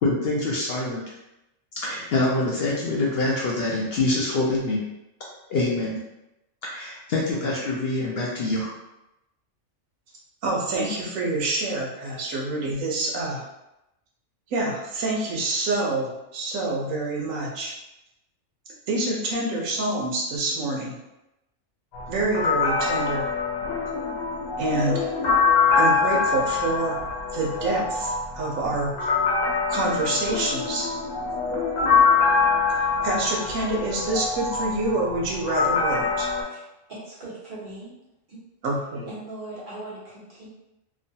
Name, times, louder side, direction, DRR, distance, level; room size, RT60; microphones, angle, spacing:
voice 1, 0.0-1.1 1.8-4.8 5.5-6.0 6.7-8.7, left 2 dB, 65° left, -4 dB, 0.7 m, -25 dB
voice 2, 10.4-13.4 14.5-17.7 18.9-20.9 22.1-23.3 24.6-25.1 25.8-27.0 27.3-29.1 29.7-30.9 33.0-36.3 38.6-39.1, right 2 dB, 85° right, -2 dB, 1.1 m, -27 dB
sound 1, 21.9-36.4, left 5 dB, 90° left, 1.1 m, -24 dB
voice 3, 36.4-37.9 38.3-38.4 39.1-40.5, right 2 dB, 45° right, -8 dB, 1.2 m, -40 dB
3.0 x 2.1 x 2.7 m, 0.91 s
omnidirectional pair, 1.3 m